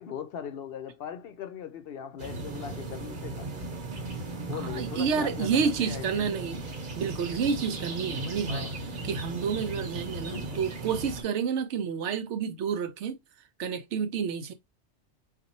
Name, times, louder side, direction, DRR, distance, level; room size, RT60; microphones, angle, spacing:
voice 1, 0.0-3.5 4.5-6.5 8.5-8.7 10.3-10.6, left 8 dB, 65° left, 0.7 m, -39 dB
sound 1, 2.2-11.2, right 2 dB, 45° right, 1.0 m, -37 dB
voice 2, 4.6-6.6 7.0-8.7 9.0-13.2 13.6-14.5, right 6 dB, 75° right, 0.9 m, -29 dB
4.1 x 2.5 x 2.7 m
omnidirectional pair, 1.2 m